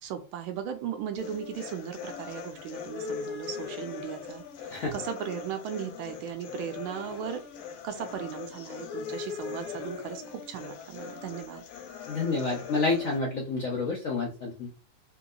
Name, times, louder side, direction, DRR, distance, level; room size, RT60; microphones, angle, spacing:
voice 1, 0.0-4.4 4.9-7.4 7.8-11.6, right 8 dB, 85° right, 7 dB, 1.5 m, -37 dB
sound 1, 1.2-13.2, left 6 dB, 85° left, 1.5 m, -40 dB
voice 2, 12.1-14.7, left 3 dB, 70° left, -1 dB, 0.8 m, -29 dB
3.4 x 2.9 x 2.3 m, 0.33 s
omnidirectional pair, 2.3 m